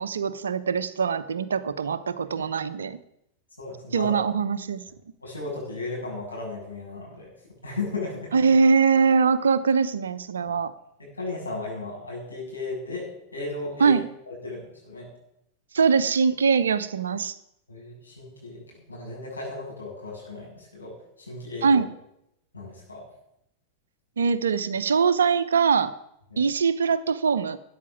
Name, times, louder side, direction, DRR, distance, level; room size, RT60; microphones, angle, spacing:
voice 1, 0.0-3.0 3.9-4.8 8.3-10.7 13.8-14.1 15.7-17.3 21.6-21.9 24.2-25.9 26.4-27.6, right 5 dB, 70° right, 15 dB, 0.8 m, -22 dB
voice 2, 3.6-4.2 5.2-7.3 7.6-8.3 11.0-15.1 17.7-21.8 22.5-23.0 26.3-26.5, left 3 dB, 80° left, -3 dB, 7.6 m, -35 dB
13.5 x 9.6 x 7.2 m, 0.79 s
figure-of-eight pair, 90°, 0 cm